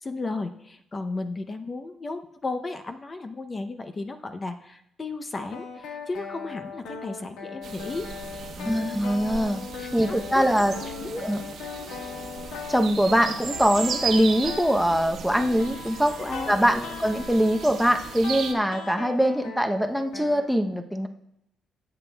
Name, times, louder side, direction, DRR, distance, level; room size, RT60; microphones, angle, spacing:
voice 1, 0.0-9.1 9.8-10.5 11.0-11.6 16.2-17.0, left 3 dB, 30° left, 8 dB, 0.6 m, -35 dB
sound 1, 5.4-20.5, left 5 dB, 90° left, 1.5 m, -39 dB
sound 2, 7.6-18.5, right 6 dB, 65° right, 1.1 m, -36 dB
voice 2, 8.6-9.6 9.9-10.7 11.2-11.4 12.7-16.2 16.5-21.1, equal, ahead, 5 dB, 0.7 m, -23 dB
17.0 x 7.9 x 2.3 m, 0.81 s
cardioid pair, 90°, 0 cm